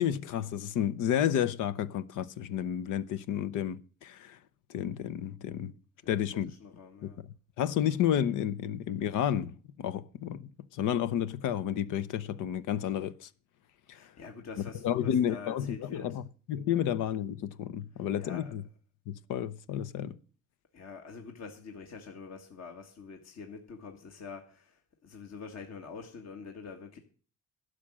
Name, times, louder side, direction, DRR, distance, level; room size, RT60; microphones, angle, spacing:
voice 1, 0.0-4.4 4.7-5.7 6.1-6.5 7.0-7.1 7.6-13.3 13.9-14.1 14.8-16.2 16.5-18.6 19.1-20.2, left 10 dB, 85° left, 0.7 m, -31 dB
voice 2, 6.0-7.2 13.9-16.2 16.7-16.8 17.9-18.6 20.7-27.0, left 5 dB, 60° left, 1.8 m, -46 dB
12.0 x 6.4 x 8.6 m
cardioid pair, 90°, 30 cm